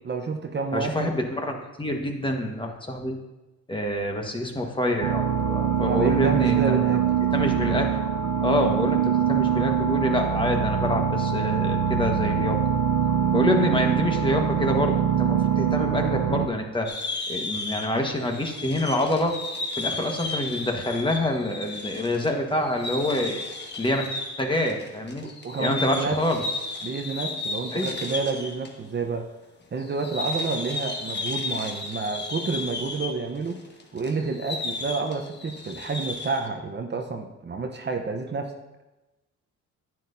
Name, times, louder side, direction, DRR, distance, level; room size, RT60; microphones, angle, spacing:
voice 1, 0.0-1.1 5.9-7.0 25.2-26.2 26.8-29.3 29.7-33.6 33.9-38.5, right 4 dB, 35° right, 4 dB, 0.9 m, -29 dB
voice 2, 0.7-3.2 3.7-6.8 7.3-8.0 8.4-12.6 13.3-16.9 17.3-19.4 19.7-23.4 23.8-25.3 25.6-26.4 27.7-28.0, left 1 dB, 15° left, 2 dB, 1.4 m, -27 dB
sound 1, 5.0-16.5, right 8 dB, 70° right, 0.8 m, -23 dB
sound 2, 16.9-28.7 29.0-29.1 29.8-36.5, left 2 dB, 35° left, 1.4 m, -34 dB
10.5 x 9.3 x 2.7 m, 1.0 s
cardioid pair, 90°, 30 cm